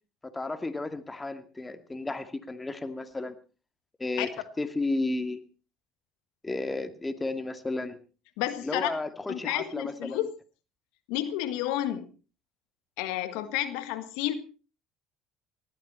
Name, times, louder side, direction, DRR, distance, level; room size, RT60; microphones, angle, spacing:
voice 1, 0.3-3.4 4.0-4.3 4.6-5.4 6.4-8.0 8.6-10.2, left 2 dB, 15° left, 9 dB, 2.2 m, -33 dB
voice 2, 8.4-8.9 9.3-10.3 11.1-12.1 13.0-14.3, left 13 dB, 75° left, 11 dB, 1.7 m, -31 dB
19.5 x 15.0 x 4.3 m, 0.36 s
supercardioid pair, 75°, 0 cm